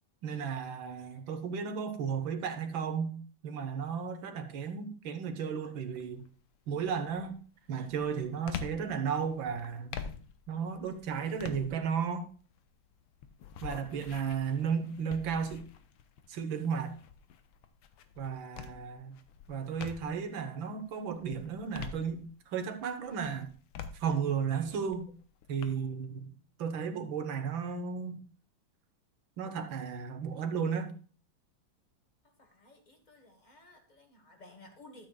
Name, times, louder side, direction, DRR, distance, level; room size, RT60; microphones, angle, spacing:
voice 1, 0.2-3.2 3.4-6.3 6.7-7.4 7.7-10.0 10.5-12.3 13.6-15.6 16.3-17.0 18.2-19.2 19.5-23.5 23.9-25.1 25.5-26.3 26.6-28.2 29.4-30.9, right 6 dB, 70° right, 8 dB, 1.8 m, -34 dB
sound 1, 5.9-6.3 6.8-20.3 20.8-22.6 23.1-25.6, left 7 dB, 80° left, 1.6 m, -47 dB
voice 2, 32.4-35.1, left 2 dB, 25° left, 4 dB, 1.3 m, -55 dB
13.0 x 7.7 x 2.3 m, 0.40 s
omnidirectional pair, 2.3 m